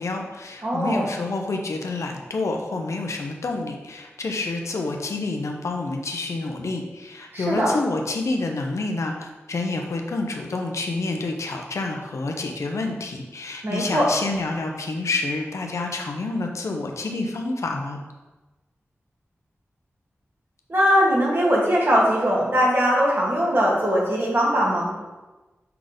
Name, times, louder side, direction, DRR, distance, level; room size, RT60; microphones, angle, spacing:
voice 1, 0.0-18.0, left 3 dB, 80° left, 3 dB, 0.8 m, -28 dB
voice 2, 0.6-1.1 7.3-7.7 13.6-14.1 20.7-24.9, equal, 50° right, -4 dB, 2.2 m, -20 dB
5.8 x 3.9 x 5.0 m, 1.2 s
cardioid pair, 45°, 5 cm